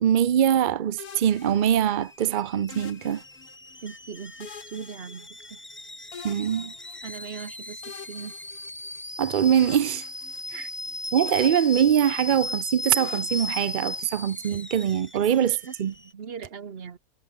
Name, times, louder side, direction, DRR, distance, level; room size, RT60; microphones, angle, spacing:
voice 1, 0.0-3.2 6.2-6.7 9.2-10.1 10.5-10.6 11.1-15.9, right 9 dB, 70° right, 0.4 m, -23 dB
sound 1, 1.0-2.1 2.7-3.8 4.4-5.8 6.1-7.3 7.8-9.2 9.5-10.9 11.3-12.5 13.0-14.3, left 7 dB, 70° left, 2.0 m, -46 dB
Alarm / Boiling, 1.3-16.1, left 1 dB, 10° left, 0.8 m, -38 dB
voice 2, 3.8-5.6 7.0-7.8 8.1-8.3 10.5-10.7 15.1-15.7 16.1-17.0, right 6 dB, 40° right, 1.2 m, -39 dB
omnidirectional pair, 1.7 m